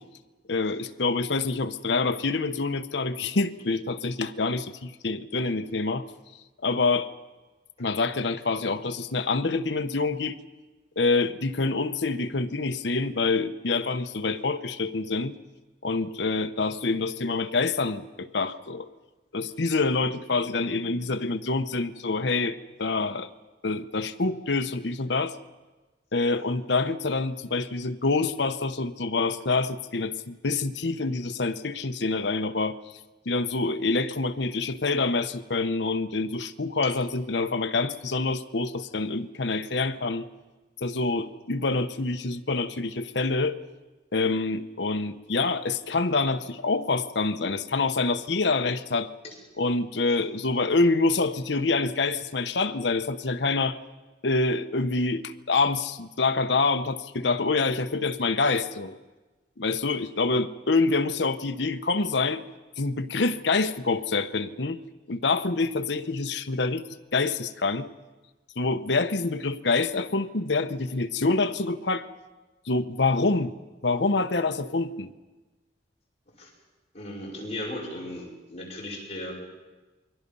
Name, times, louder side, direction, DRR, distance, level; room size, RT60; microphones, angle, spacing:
voice 1, 0.5-6.0 6.6-7.1 7.8-10.4 11.0-15.3 15.8-18.9 19.3-23.3 23.6-25.3 26.1-32.8 33.3-40.3 40.8-43.6 44.1-49.1 49.6-53.8 54.2-58.9 59.6-62.4 62.8-64.8 65.1-66.8 67.1-67.9 68.6-72.1 72.7-73.5 73.8-75.1, left 3 dB, 70° left, 9 dB, 1.0 m, -26 dB
voice 2, 76.9-79.3, left 1 dB, 40° left, -4 dB, 5.5 m, -36 dB
28.5 x 22.5 x 5.5 m, 1.2 s
head